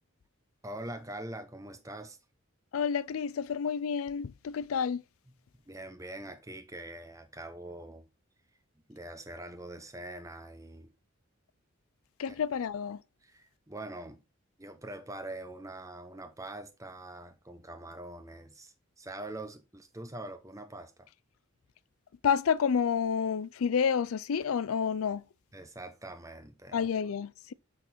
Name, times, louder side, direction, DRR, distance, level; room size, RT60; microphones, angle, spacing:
voice 1, 0.6-2.2 5.7-8.0 8.9-10.9 12.3-12.4 13.2-14.2 14.6-21.1 25.5-26.9, right 1 dB, 15° right, 0.9 m, -44 dB
voice 2, 2.7-5.0 12.2-13.0 22.2-25.2 26.7-27.5, left 7 dB, 85° left, 0.4 m, -29 dB
8.3 x 3.9 x 4.3 m
head